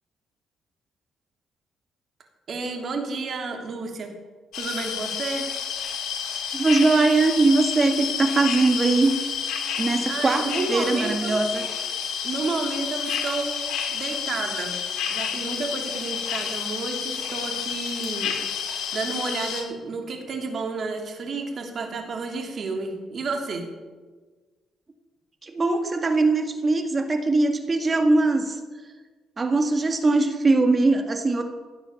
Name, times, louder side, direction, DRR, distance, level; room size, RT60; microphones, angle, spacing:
voice 1, 2.5-4.1 4.5-5.5 10.1-11.4 12.2-13.6 13.9-14.8 15.1-18.3 18.9-23.7, right 3 dB, 55° right, 3 dB, 3.1 m, -31 dB
sound 1, 4.5-19.6, left 7 dB, 80° left, 2.7 m, -30 dB
voice 2, 6.5-9.2 9.8-11.6 25.4-28.6 29.4-31.4, right 3 dB, 30° right, 6 dB, 1.8 m, -21 dB
16.5 x 9.1 x 7.1 m, 1.4 s
cardioid pair, 90°, 0 cm